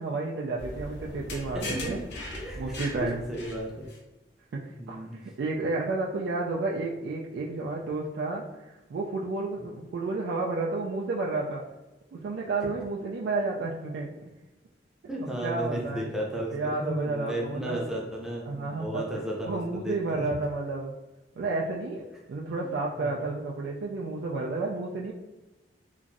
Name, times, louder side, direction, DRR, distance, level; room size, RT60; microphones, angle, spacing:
voice 1, 0.0-2.0 2.6-3.2 4.5-11.6 12.1-14.3 15.4-16.1 16.5-17.8 18.4-19.1 19.4-20.9 21.4-25.1, right 3 dB, 75° right, -2 dB, 0.3 m, -31 dB
sound 1, 0.6-4.0, left 1 dB, 75° left, 0.6 m, -39 dB
voice 2, 1.5-2.0 2.3-3.9 4.8-5.1 15.1-20.3 23.0-23.2, right 1 dB, 5° right, -3 dB, 0.5 m, -34 dB
2.9 x 2.5 x 2.5 m, 1.1 s
head